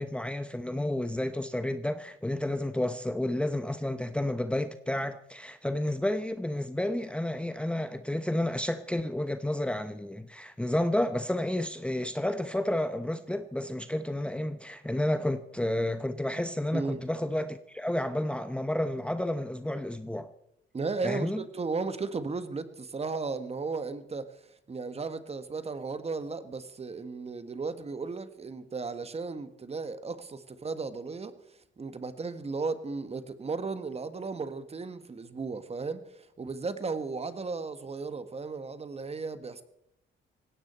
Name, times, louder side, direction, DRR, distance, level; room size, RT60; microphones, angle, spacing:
voice 1, 0.0-20.3 21.0-21.4, left 1 dB, 5° left, 0.8 m, -31 dB
voice 2, 16.7-17.1 20.7-24.4 24.7-31.3 31.8-39.6, right 4 dB, 30° right, 1.5 m, -35 dB
18.5 x 16.5 x 4.4 m
cardioid pair, 90°, 20 cm